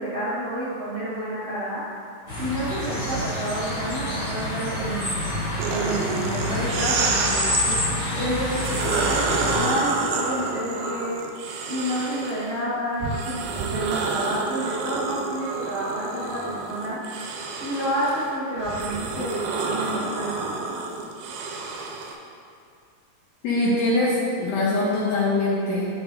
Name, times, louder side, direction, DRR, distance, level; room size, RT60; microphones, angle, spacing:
voice 1, 0.0-2.0 2.4-5.1 5.7-7.8 8.1-11.2 11.7-17.2 17.6-20.4, equal, 60° right, -12 dB, 1.4 m, -29 dB
sound 1, 2.3-9.6, left 1 dB, 45° left, 1.1 m, -28 dB
sound 2, 5.6-7.9 8.4-12.5 13.0-22.2, right 4 dB, 85° right, 2.5 m, -29 dB
voice 2, 23.4-25.9, left 2 dB, 75° left, -8 dB, 2.6 m, -23 dB
9.3 x 6.1 x 2.5 m, 2.3 s
omnidirectional pair, 4.4 m